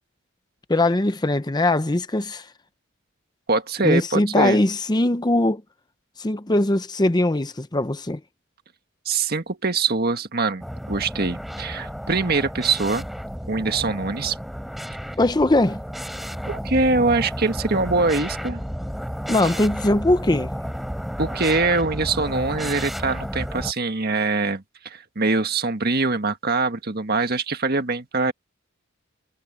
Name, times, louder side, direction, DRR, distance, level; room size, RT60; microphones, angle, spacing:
voice 1, 0.7-2.5 3.8-5.6 6.2-8.2 15.2-15.8 19.3-20.5, left 1 dB, 20° left, 0.7 m, -21 dB
voice 2, 3.5-4.6 9.0-13.1 13.5-14.4 16.5-18.6 21.2-28.3, right 3 dB, 50° right, 1.7 m, -23 dB
sound 1, 10.6-23.7, equal, ahead, 5.4 m, -32 dB
head